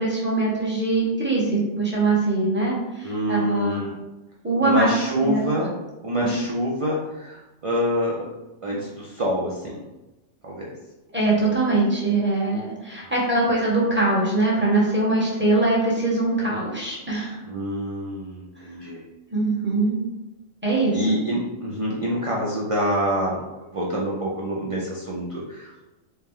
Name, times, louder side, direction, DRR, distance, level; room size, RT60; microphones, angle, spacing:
voice 1, 0.0-3.9 4.4-5.5 6.2-6.3 11.1-17.4 19.3-20.0 20.6-21.0, right 2 dB, 10° right, -6 dB, 1.0 m, -22 dB
voice 2, 3.0-3.9 4.6-5.7 6.0-8.3 8.6-9.8 10.4-10.7 13.0-13.1 17.5-19.0 20.9-23.4 23.7-25.9, equal, 55° right, -4 dB, 0.3 m, -26 dB
4.4 x 2.1 x 3.6 m, 1.0 s
omnidirectional pair, 1.4 m